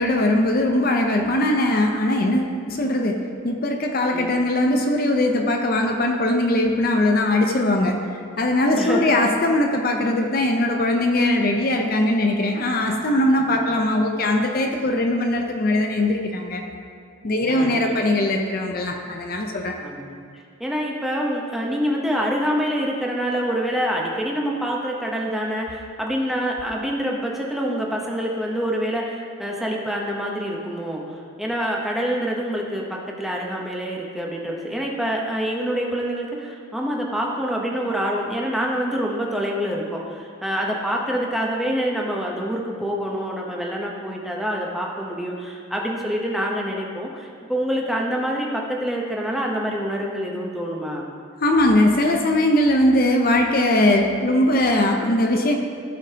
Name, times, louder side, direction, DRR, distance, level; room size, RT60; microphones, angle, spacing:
voice 1, 0.0-8.0 8.4-16.6 17.2-19.8 51.4-55.6, left 1 dB, 45° left, 3 dB, 0.6 m, -20 dB
voice 2, 8.8-9.3 13.5-13.6 17.5-17.8 19.8-20.2 20.6-51.1, equal, ahead, -2 dB, 0.8 m, -26 dB
15.0 x 5.2 x 2.8 m, 2.2 s
head